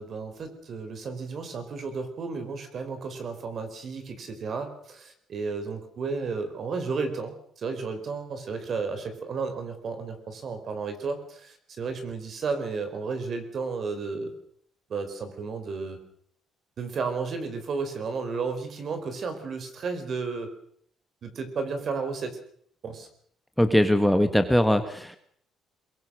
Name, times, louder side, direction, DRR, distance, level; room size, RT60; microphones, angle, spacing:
voice 1, 0.0-14.3 14.9-16.0 16.8-20.5 21.2-22.4 22.8-23.1, right 4 dB, 45° right, 8 dB, 4.8 m, -33 dB
voice 2, 23.6-25.2, equal, ahead, 8 dB, 1.6 m, -21 dB
23.0 x 22.0 x 6.5 m, 0.65 s
cardioid pair, 130°, 0 cm